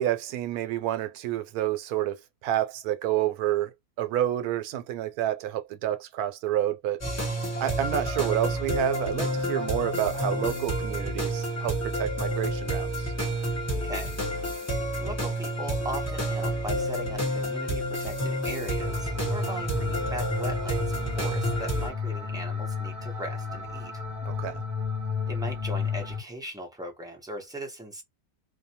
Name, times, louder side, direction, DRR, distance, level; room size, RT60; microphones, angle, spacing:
voice 1, 0.0-7.0 7.6-13.1 24.2-24.6, right 12 dB, 80° right, 1.1 m, -29 dB
sound 1, 7.0-21.9, right 1 dB, 10° left, 0.9 m, -29 dB
voice 2, 13.7-14.2 15.0-24.0 25.3-28.0, right 1 dB, 5° right, 0.5 m, -39 dB
sound 2, 18.8-26.2, left 6 dB, 30° right, 1.1 m, -32 dB
2.6 x 2.2 x 2.7 m
omnidirectional pair, 1.6 m